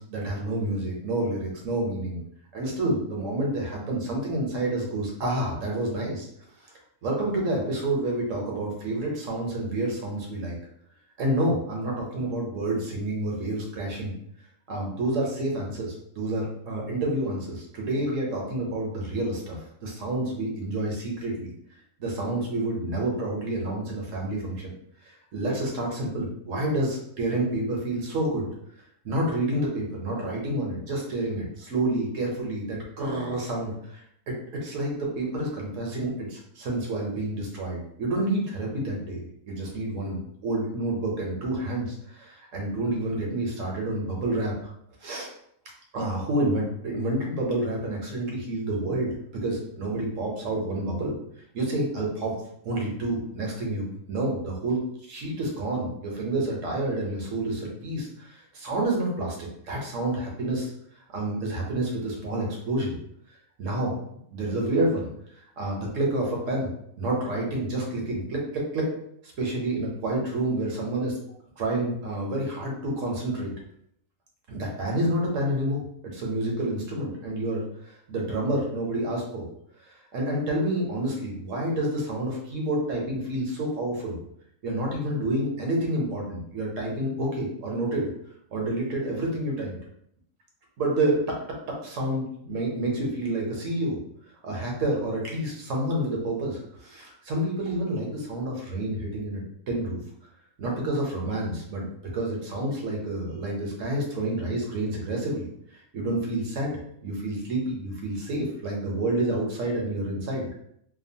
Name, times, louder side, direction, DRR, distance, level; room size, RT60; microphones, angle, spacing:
voice 1, 0.0-2.2 2.5-6.3 7.0-10.6 11.2-14.1 14.7-21.5 22.0-24.7 25.3-28.5 29.0-34.4 34.6-44.7 45.0-45.3 45.9-51.1 51.5-52.4 52.6-60.7 61.1-63.0 63.6-65.1 65.6-68.9 69.4-71.2 71.6-73.5 74.5-79.4 79.9-84.2 84.6-88.1 88.5-89.8 90.8-91.4 91.7-94.0 94.4-100.0 100.6-101.9 102.1-105.5 105.9-110.5, right 1 dB, 70° right, -1 dB, 1.1 m, -29 dB
2.9 x 2.3 x 2.6 m, 0.71 s
omnidirectional pair, 1.4 m